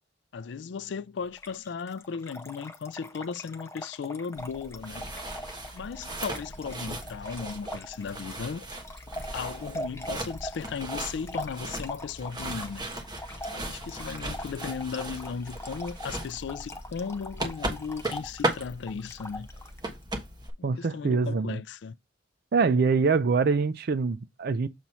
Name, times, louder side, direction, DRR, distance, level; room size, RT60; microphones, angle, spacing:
voice 1, 0.3-5.3 5.7-8.7 9.3-12.9 13.5-19.5 20.6-22.0, left 6 dB, 65° left, 0.4 m, -36 dB
Trickle dribble / Fill (with liquid), 1.3-19.8, left 1 dB, 15° left, 0.6 m, -42 dB
sound 1, 4.4-20.5, right 2 dB, 25° right, 1.2 m, -37 dB
voice 2, 20.6-21.6 22.5-24.7, right 4 dB, 55° right, 0.4 m, -24 dB
7.1 x 3.0 x 5.4 m
head